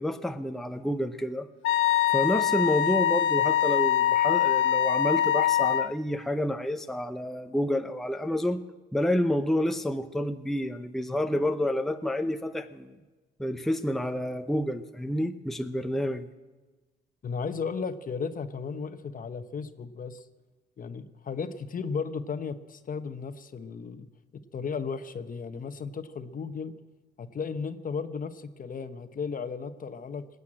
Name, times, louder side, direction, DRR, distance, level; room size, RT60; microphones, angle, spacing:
voice 1, 0.0-1.5 2.1-8.6 8.9-13.0 13.4-16.3, left 1 dB, ahead, 7 dB, 0.7 m, -29 dB
Wind instrument woodwind instrument, 1.6-5.9, left 10 dB, 80° left, 1.0 m, -24 dB
voice 2, 17.2-20.2 20.8-24.1 24.5-26.7 27.2-30.4, left 5 dB, 45° left, 10 dB, 1.0 m, -35 dB
19.5 x 8.2 x 8.8 m, 1.2 s
cardioid pair, 90°, 20 cm